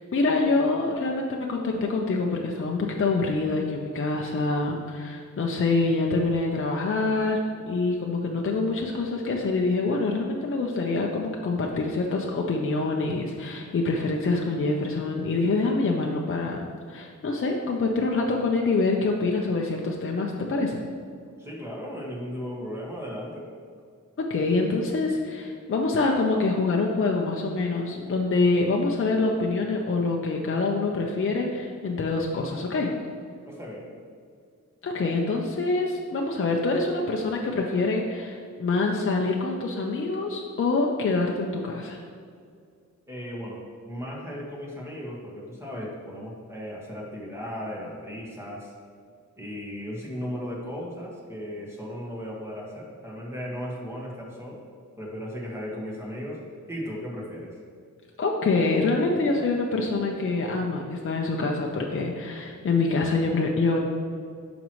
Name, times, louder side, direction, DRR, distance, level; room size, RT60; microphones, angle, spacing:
voice 1, 0.1-7.4 7.7-20.8 24.2-32.9 34.8-42.0 58.2-63.8, left 3 dB, 45° left, 0 dB, 0.7 m, -25 dB
voice 2, 21.4-23.4 33.4-33.9 43.1-48.7 49.4-54.6 55.0-56.4 56.7-57.5, equal, 10° right, -4 dB, 1.7 m, -36 dB
9.1 x 6.1 x 3.1 m, 2.2 s
wide cardioid pair, 125°, 30 cm